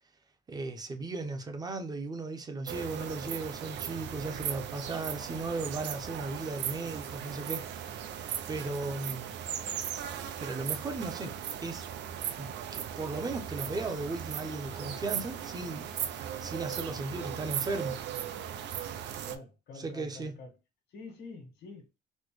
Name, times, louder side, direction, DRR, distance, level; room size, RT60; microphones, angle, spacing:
voice 1, 0.5-8.0 8.5-9.3 10.4-11.3 11.6-11.8 12.4-18.0 19.8-20.3, right 3 dB, 20° right, 0.6 m, -36 dB
sound 1, 2.7-19.4, right 9 dB, 75° right, 0.5 m, -38 dB
voice 2, 19.2-20.5 20.9-22.0, left 3 dB, 90° left, 1.3 m, -47 dB
4.2 x 2.1 x 3.0 m
cardioid pair, 150°, 18 cm